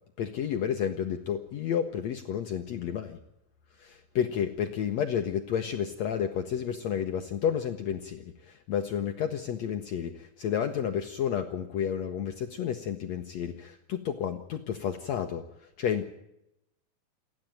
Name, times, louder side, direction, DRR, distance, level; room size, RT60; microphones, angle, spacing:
voice 1, 0.2-3.2 3.8-16.0, left 8 dB, 70° left, 7 dB, 1.7 m, -31 dB
28.0 x 10.5 x 9.1 m, 0.85 s
omnidirectional pair, 4.3 m